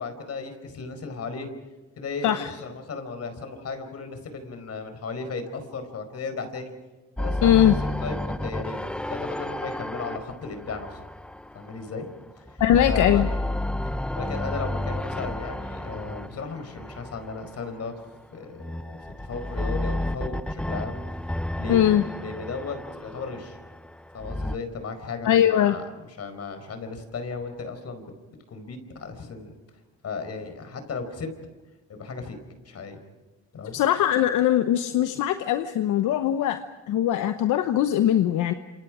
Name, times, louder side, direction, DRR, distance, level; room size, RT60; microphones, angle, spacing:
voice 1, 0.0-1.5 2.0-6.7 7.2-11.0 11.5-12.1 12.4-13.3 13.9-17.9 18.3-21.0 21.6-21.8 22.2-23.6 24.1-28.1 28.5-29.5 30.0-31.3 31.9-32.4 32.6-33.0 33.5-33.8, left 4 dB, 55° left, 8 dB, 4.9 m, -35 dB
sound 1, 7.2-12.1 12.5-17.8 18.6-24.6, left 1 dB, 5° left, 0.7 m, -31 dB
voice 2, 7.4-7.8 12.6-13.3 21.7-22.0 25.2-25.7 33.7-36.6 36.9-38.5, left 11 dB, 85° left, 9 dB, 1.0 m, -21 dB
28.0 x 27.0 x 5.0 m, 1.2 s
cardioid pair, 90°, 30 cm